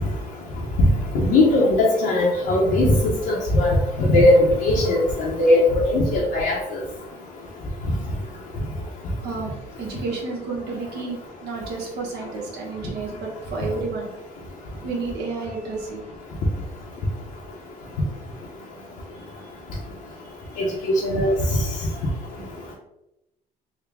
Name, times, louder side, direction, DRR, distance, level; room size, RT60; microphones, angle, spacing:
voice 1, 1.2-5.6 5.9-6.8 20.6-20.7 21.0-21.3, left 1 dB, 75° left, -5 dB, 0.8 m, -19 dB
voice 2, 9.2-14.1 14.8-16.0 22.4-22.5, right 4 dB, 75° right, -1 dB, 1.1 m, -31 dB
3.6 x 2.2 x 3.4 m, 0.89 s
cardioid pair, 110°, 17 cm